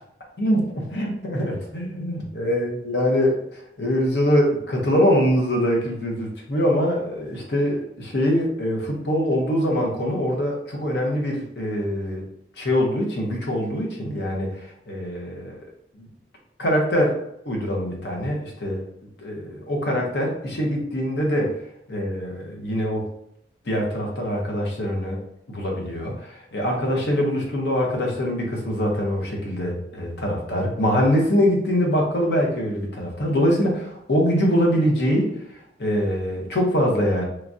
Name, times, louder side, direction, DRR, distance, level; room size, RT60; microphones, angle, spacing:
voice 1, 0.4-12.2 12.6-15.6 16.0-16.1 16.6-17.1 17.5-18.8 19.2-21.5 21.9-23.1 23.7-25.2 25.5-35.3 35.8-37.2, equal, 75° left, 0 dB, 0.7 m, -23 dB
3.1 x 2.3 x 2.6 m, 0.76 s
head